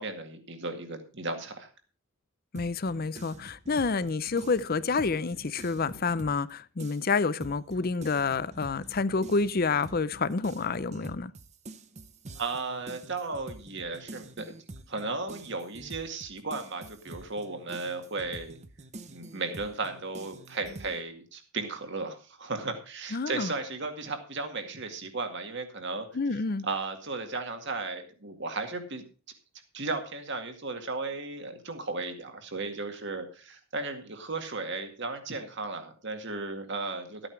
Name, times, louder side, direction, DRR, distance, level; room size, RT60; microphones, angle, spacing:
voice 1, 0.0-1.7 12.3-14.5 14.9-18.6 19.1-26.1 26.3-29.0 29.7-37.3, right 3 dB, 55° right, 6 dB, 2.1 m, -35 dB
voice 2, 2.5-11.3 23.1-23.5 26.1-26.7, left 4 dB, 45° left, 17 dB, 0.6 m, -28 dB
sound 1, 2.6-6.5 6.8-21.0, right 2 dB, 30° right, 0.8 m, -46 dB
13.0 x 9.0 x 4.6 m, 0.36 s
head